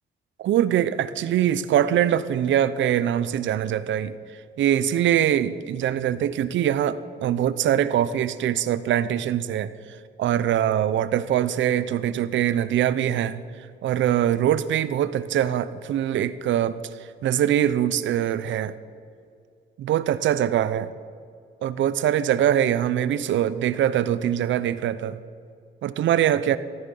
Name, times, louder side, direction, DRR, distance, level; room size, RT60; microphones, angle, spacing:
voice 1, 0.4-4.2 4.6-9.7 10.2-13.4 13.8-16.8 17.2-18.7 19.8-20.9 21.6-25.2 25.8-26.6, right 10 dB, 70° right, 15 dB, 0.7 m, -23 dB
14.0 x 12.5 x 5.4 m, 2.3 s
cardioid pair, 90°, 20 cm